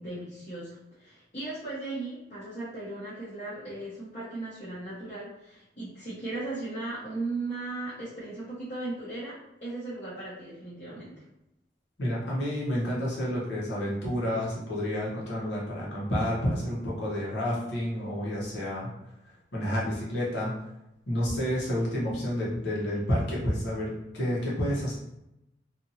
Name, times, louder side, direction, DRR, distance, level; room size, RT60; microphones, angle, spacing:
voice 1, 0.0-11.2, right 2 dB, 40° left, -11 dB, 0.9 m, -37 dB
voice 2, 12.0-18.9 19.5-20.6 21.1-25.0, equal, 70° left, -5 dB, 1.0 m, -30 dB
2.8 x 2.6 x 2.6 m, 0.88 s
head